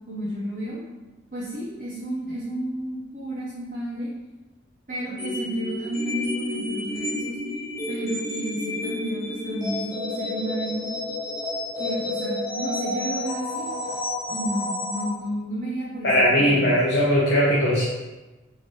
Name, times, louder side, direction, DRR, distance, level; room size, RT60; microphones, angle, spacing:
voice 1, 0.1-0.8 1.3-4.1 4.9-7.4 7.9-10.9 11.8-13.7 14.3-16.7, right 1 dB, 40° right, -9 dB, 0.8 m, -31 dB
sound 1, 5.2-15.1, left 2 dB, 15° left, 1.0 m, -30 dB
voice 2, 16.0-17.8, equal, 60° left, -7 dB, 0.8 m, -19 dB
4.3 x 2.8 x 3.1 m, 1.1 s
head